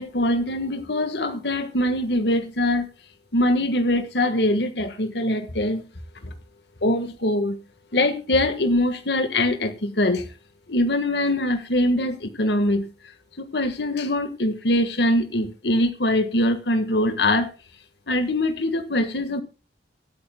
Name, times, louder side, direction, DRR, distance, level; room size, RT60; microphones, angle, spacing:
voice 1, 0.0-2.9 3.3-5.8 6.2-6.3 6.8-7.6 7.9-10.3 10.7-12.9 13.4-17.5 18.1-19.4, left 1 dB, 65° left, 1.5 m, -23 dB
25.0 x 9.2 x 2.2 m
head